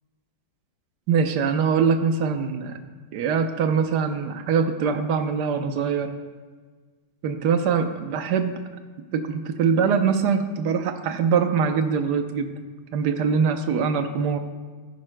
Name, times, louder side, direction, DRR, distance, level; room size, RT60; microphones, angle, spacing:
voice 1, 1.1-2.8 3.1-6.1 7.2-8.6 9.1-12.6 12.9-14.4, right 6 dB, 65° right, 7 dB, 1.1 m, -23 dB
16.0 x 10.5 x 2.2 m, 1.5 s
omnidirectional pair, 2.3 m